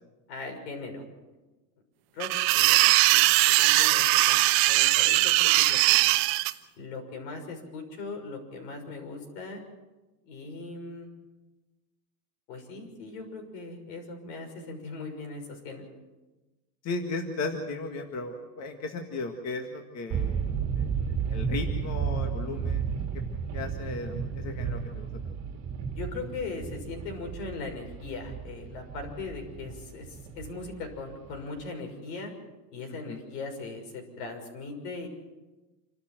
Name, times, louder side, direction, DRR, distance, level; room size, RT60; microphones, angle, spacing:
voice 1, 0.3-1.1 2.1-2.3 2.5-6.1 6.8-9.6 10.2-11.1 12.5-15.9 25.9-32.3 32.7-35.1, left 3 dB, 75° left, 4 dB, 6.4 m, -39 dB
sound 1, 2.2-6.5, right 19 dB, 50° right, 1.0 m, -21 dB
voice 2, 16.8-20.4 20.8-20.9 21.3-22.9 23.5-25.3 33.0-33.2, left 3 dB, 30° left, 4 dB, 1.9 m, -35 dB
sound 2, 20.1-31.6, right 6 dB, 35° right, 2.1 m, -33 dB
27.5 x 13.0 x 7.7 m, 1.1 s
supercardioid pair, 145°, 49 cm